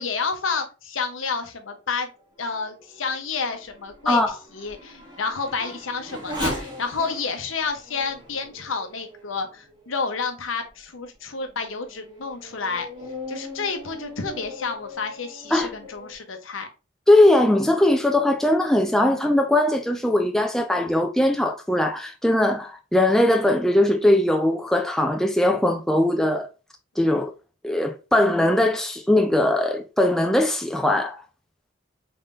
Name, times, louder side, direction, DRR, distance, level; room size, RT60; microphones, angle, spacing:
voice 1, 0.0-2.1 2.4-12.9 13.3-16.7, left 4 dB, 90° left, 0.8 m, -30 dB
Race car auto racing / Accelerating revving vroom, 2.1-10.1 10.7-10.8 11.4-16.1, equal, 25° right, 1.4 m, -39 dB
voice 2, 17.1-26.5 27.0-27.3 27.6-31.2, left 1 dB, ahead, 0.3 m, -20 dB
3.9 x 3.7 x 2.5 m
head